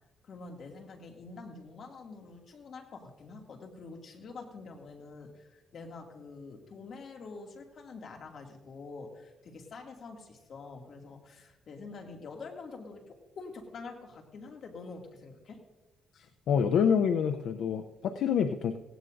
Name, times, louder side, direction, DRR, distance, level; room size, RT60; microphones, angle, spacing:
voice 1, 0.2-15.6, left 4 dB, 55° left, 2 dB, 2.3 m, -46 dB
voice 2, 16.2-18.8, left 7 dB, 75° left, 7 dB, 0.6 m, -27 dB
17.0 x 17.0 x 2.6 m, 1.1 s
cardioid pair, 90°, 0 cm